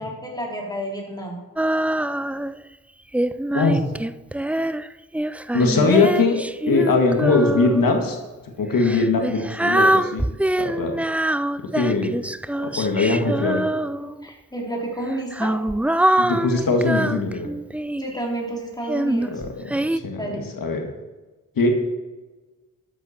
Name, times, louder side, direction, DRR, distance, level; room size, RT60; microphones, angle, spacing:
voice 1, 0.0-1.4 13.9-15.5 18.0-19.3 20.2-20.5, right 1 dB, 10° left, -2 dB, 3.3 m, -30 dB
Female singing, 1.6-2.6 3.1-8.0 8.7-14.3 15.1-18.2 18.9-20.0, right 1 dB, 5° right, 0.3 m, -24 dB
voice 2, 5.5-6.4 6.7-8.2 8.6-10.2 10.6-10.9 11.6-12.1 12.6-13.6 16.2-17.5 19.3-20.9 21.6-21.7, left 3 dB, 75° left, 3 dB, 1.9 m, -21 dB
12.0 x 8.2 x 4.4 m, 1.2 s
supercardioid pair, 40°, 34 cm